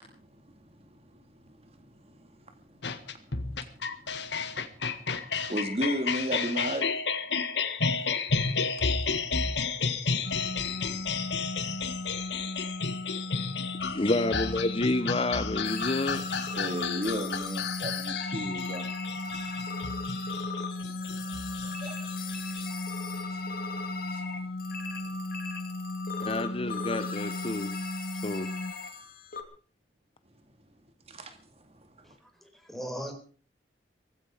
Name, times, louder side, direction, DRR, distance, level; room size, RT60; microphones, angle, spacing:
voice 1, 0.0-6.9 16.6-18.9 21.6-22.1 23.3-23.4 24.1-24.3 31.1-32.2, equal, 35° right, 2.2 m, -37 dB
sound 1, 2.8-22.6, left 5 dB, 70° left, 1.8 m, -32 dB
sound 2, 10.2-28.7, left 2 dB, 90° left, 1.5 m, -37 dB
voice 2, 13.9-16.3 26.2-27.8 28.2-28.5, left 2 dB, 30° left, 0.8 m, -29 dB
sound 3, 15.6-29.4, left 4 dB, 55° left, 2.9 m, -39 dB
voice 3, 32.0-33.1, equal, ahead, 4.5 m, -39 dB
18.0 x 16.0 x 5.0 m
head